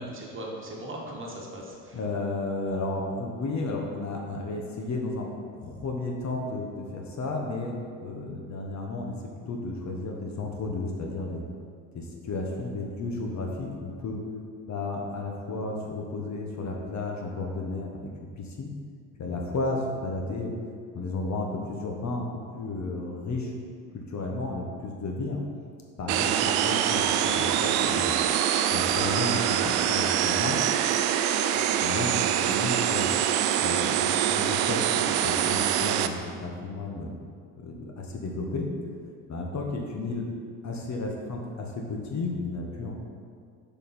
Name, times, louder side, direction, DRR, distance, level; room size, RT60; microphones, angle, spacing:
voice 1, 0.0-2.0 31.5-31.7, right 1 dB, 30° right, -2 dB, 1.8 m, -39 dB
voice 2, 1.9-5.3 5.5-7.7 8.0-9.1 9.5-11.4 11.9-14.2 14.7-17.9 18.4-18.7 19.2-20.5 20.9-22.3 22.5-23.5 23.9-25.4 26.0-28.1 28.7-30.6 31.8-33.1 33.6-37.2 37.6-38.7 39.3-40.3 40.6-42.9, left 2 dB, 45° left, 1 dB, 1.2 m, -33 dB
sound 1, 26.1-36.1, right 10 dB, 90° right, 0.5 m, -25 dB
6.5 x 5.7 x 4.4 m, 2.1 s
hypercardioid pair, 70°, 41 cm